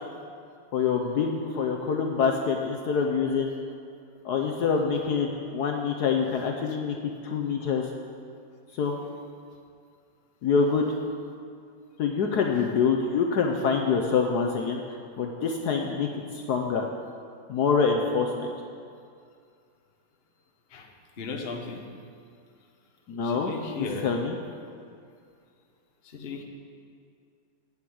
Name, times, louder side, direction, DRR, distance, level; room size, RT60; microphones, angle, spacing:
voice 1, 0.7-3.5 4.2-7.0 7.2-7.9 8.7-9.0 10.4-10.9 12.0-14.8 15.2-16.1 16.3-16.9 17.5-18.5 23.1-23.5 23.8-24.4, left 5 dB, 65° left, 2 dB, 1.2 m, -25 dB
voice 2, 21.2-21.8 23.2-24.1 26.0-26.4, left 4 dB, 40° left, 2 dB, 1.0 m, -36 dB
8.8 x 8.0 x 8.6 m, 2.3 s
omnidirectional pair, 2.1 m